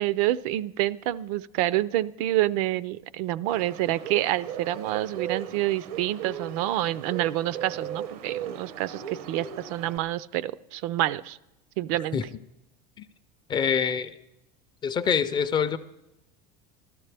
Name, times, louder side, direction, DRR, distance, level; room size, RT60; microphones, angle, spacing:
voice 1, 0.0-11.4 11.8-12.2, right 15 dB, 70° right, 18 dB, 0.4 m, -27 dB
Bird, 3.5-10.0, right 9 dB, 85° right, 0.8 m, -37 dB
voice 2, 13.5-14.1 14.8-15.8, left 7 dB, 25° left, 11 dB, 0.4 m, -25 dB
17.0 x 13.0 x 3.4 m, 0.88 s
supercardioid pair, 145°, 19 cm